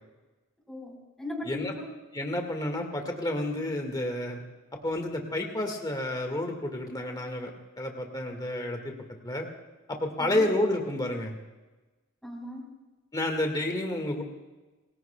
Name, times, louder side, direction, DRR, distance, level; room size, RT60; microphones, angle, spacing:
voice 1, 0.7-1.9 10.2-10.5 12.2-12.7, left 2 dB, ahead, 0 dB, 4.4 m, -38 dB
voice 2, 2.1-4.4 4.8-8.9 9.2-9.5 9.9-11.3 13.1-14.2, left 1 dB, 20° left, 3 dB, 1.8 m, -30 dB
28.5 x 20.5 x 2.3 m, 1.2 s
head